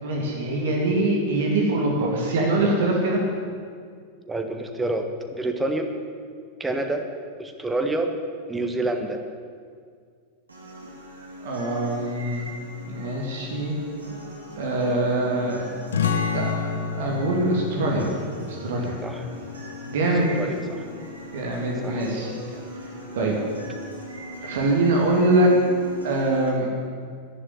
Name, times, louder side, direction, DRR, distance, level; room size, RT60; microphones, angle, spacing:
voice 1, 0.0-3.2 11.4-12.5 12.9-13.7 14.6-15.7 16.3-18.1 18.5-19.0 19.9-20.3 21.3-22.3 23.1-23.4 24.4-25.5 26.0-26.7, right 2 dB, 55° right, -2 dB, 2.9 m, -23 dB
voice 2, 4.3-5.9 6.6-7.1 7.4-8.2 8.5-9.2 19.0-19.2 20.4-20.8 21.8-22.6 23.1-23.4, right 2 dB, 10° right, 5 dB, 1.5 m, -28 dB
sound 1, 10.5-26.5, left 1 dB, 75° right, 3.1 m, -40 dB
sound 2, 15.9-21.1, left 6 dB, 65° left, 1.2 m, -30 dB
11.0 x 11.0 x 9.8 m, 2.1 s
figure-of-eight pair, 90°, 0 cm